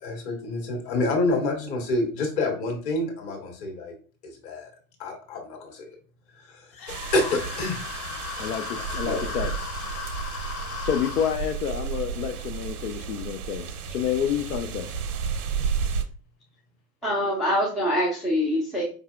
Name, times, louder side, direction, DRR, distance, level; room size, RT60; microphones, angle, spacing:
voice 1, 0.0-3.9 4.2-4.7 5.0-5.9 6.3-6.7 7.1-7.8 9.0-9.5, left 2 dB, 50° left, 1 dB, 1.5 m, -28 dB
sound 1, 6.7-11.4, left 6 dB, 30° left, 0.7 m, -36 dB
sound 2, 6.9-16.0, right 6 dB, 70° right, 0.7 m, -32 dB
voice 2, 8.4-9.5 10.8-14.9, left 8 dB, 75° left, 7 dB, 0.5 m, -29 dB
voice 3, 17.0-18.8, equal, ahead, -4 dB, 0.3 m, -24 dB
4.8 x 2.6 x 2.4 m, 0.40 s
figure-of-eight pair, 90°, 47 cm